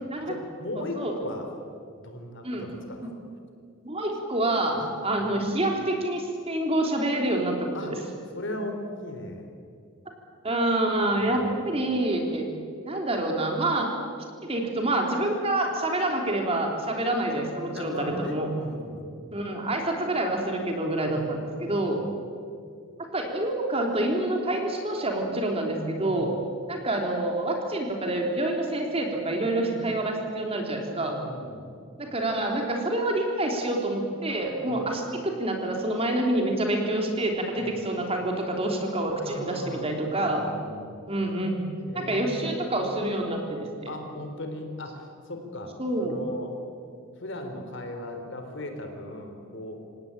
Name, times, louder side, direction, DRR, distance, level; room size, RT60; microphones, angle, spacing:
voice 1, 0.2-1.5 2.0-3.1 4.7-4.9 5.2-5.5 7.7-9.5 11.2-11.6 17.7-19.5 21.1-22.2 26.0-26.4 29.6-29.9 31.1-31.7 34.7-34.9 37.6-37.8 39.3-39.9 40.3-41.0 41.9-42.7 43.9-45.7 46.0-46.5 47.2-49.8, left 1 dB, 60° left, 4 dB, 3.7 m, -38 dB
voice 2, 0.8-1.1 2.4-2.7 3.8-4.8 5.0-8.0 10.4-12.5 12.8-13.9 14.4-18.5 19.3-22.0 23.1-26.3 26.7-31.2 32.0-40.4 41.1-41.6 41.9-43.9 45.8-46.2, right 1 dB, 30° right, 2 dB, 3.5 m, -27 dB
27.5 x 17.5 x 8.8 m, 2.3 s
head